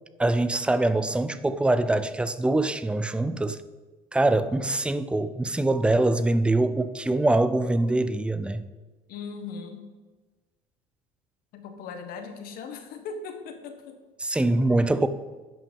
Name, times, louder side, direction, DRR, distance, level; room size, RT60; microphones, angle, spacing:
voice 1, 0.2-3.6 4.1-8.6 14.2-15.1, right 2 dB, 5° right, 12 dB, 0.5 m, -24 dB
voice 2, 9.1-9.8 11.5-13.9 15.0-15.1, left 5 dB, 60° left, 6 dB, 1.6 m, -39 dB
10.0 x 6.0 x 5.5 m, 1.3 s
cardioid pair, 115°, 17 cm